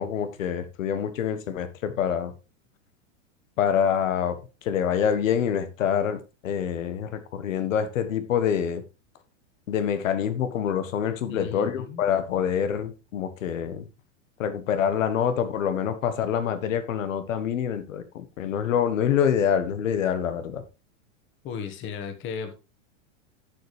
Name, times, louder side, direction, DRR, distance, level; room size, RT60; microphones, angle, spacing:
voice 1, 0.0-2.3 3.6-8.8 9.7-13.9 14.4-20.6, left 8 dB, 90° left, 1.5 m, -26 dB
voice 2, 11.3-12.0 21.4-22.5, left 6 dB, 30° left, 1.7 m, -35 dB
11.5 x 7.2 x 3.3 m
supercardioid pair, 155°, 38 cm